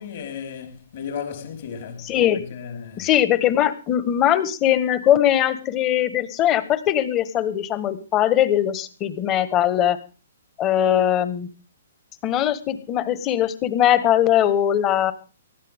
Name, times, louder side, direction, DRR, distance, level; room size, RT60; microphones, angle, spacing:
voice 1, 0.0-3.1, left 7 dB, 55° left, 5.0 m, -35 dB
voice 2, 2.0-2.4 3.0-10.0 10.6-11.5 12.2-15.1, left 11 dB, 25° left, 1.6 m, -20 dB
19.0 x 13.5 x 3.7 m
hypercardioid pair, 130°, 0 cm